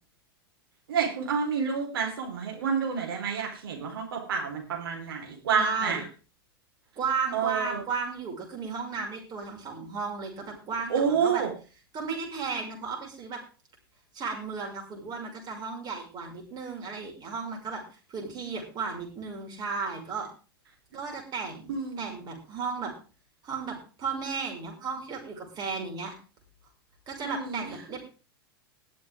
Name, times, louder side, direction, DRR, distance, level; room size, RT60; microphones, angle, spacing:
voice 1, 0.9-6.0 7.3-7.8 10.9-11.5 21.7-22.1 27.2-27.6, right 6 dB, 70° right, 2 dB, 4.5 m, -28 dB
voice 2, 5.5-6.0 7.0-11.4 11.9-13.4 14.1-20.3 20.9-22.9 23.4-26.1 27.1-28.1, right 5 dB, 35° right, 0 dB, 6.4 m, -34 dB
21.0 x 7.6 x 3.7 m, 0.35 s
figure-of-eight pair, 95°, 13 cm